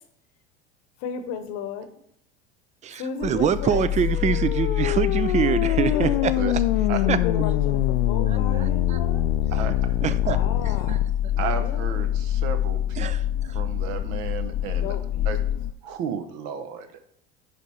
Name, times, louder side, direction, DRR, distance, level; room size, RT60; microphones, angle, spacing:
voice 1, 1.0-1.9 3.0-3.9 5.8-6.4 6.8-9.3 10.2-12.2 14.7-15.3, left 7 dB, 55° left, 9 dB, 0.9 m, -34 dB
voice 2, 2.8-6.3 7.1-7.2 8.3-9.0 10.0-10.4 10.6-11.0 13.0-13.2, right 8 dB, 25° right, 15 dB, 0.4 m, -25 dB
sound 1, 3.2-15.7, left 11 dB, 35° left, 0.6 m, -26 dB
sound 2, 3.9-11.0, left 13 dB, 80° left, 0.5 m, -27 dB
voice 3, 11.4-13.1 13.5-15.0 15.2-15.4 15.8-16.9, right 7 dB, 55° right, 9 dB, 1.0 m, -33 dB
10.0 x 3.5 x 4.2 m, 0.72 s
hypercardioid pair, 80°, 32 cm